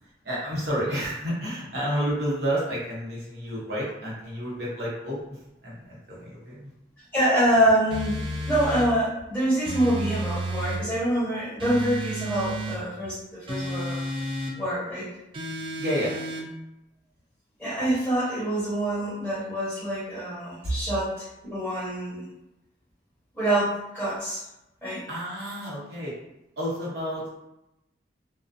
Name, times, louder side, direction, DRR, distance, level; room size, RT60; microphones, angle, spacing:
voice 1, 0.0-6.7 15.8-16.1 20.6-20.8 25.1-26.1 26.6-27.4, equal, 60° right, -6 dB, 0.9 m, -30 dB
voice 2, 7.1-8.1 8.5-14.1 14.6-15.1 17.6-22.3 23.3-24.4 24.8-25.0, right 1 dB, 5° left, -10 dB, 0.7 m, -26 dB
sound 1, 7.9-8.9 9.6-10.8 11.6-12.8 13.5-14.6 15.3-16.5, right 1 dB, 30° right, 0.3 m, -31 dB
2.4 x 2.2 x 2.5 m, 0.89 s
head